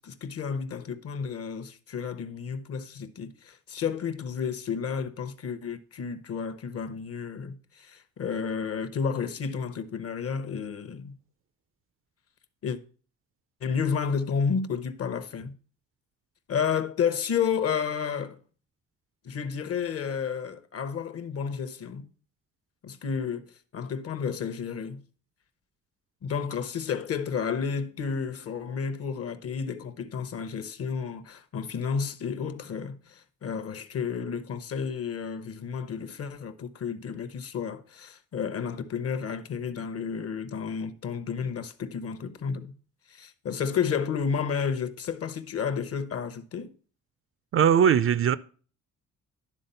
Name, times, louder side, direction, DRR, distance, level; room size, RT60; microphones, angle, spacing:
voice 1, 0.0-11.2 12.6-12.8 13.6-15.6 16.5-18.4 19.2-22.1 22.8-23.5 23.7-25.0 26.2-42.7 43.1-46.7, left 6 dB, 50° left, 0.8 m, -31 dB
voice 2, 47.5-48.4, right 8 dB, 45° right, 0.4 m, -20 dB
11.0 x 3.8 x 5.4 m
cardioid pair, 90°, 30 cm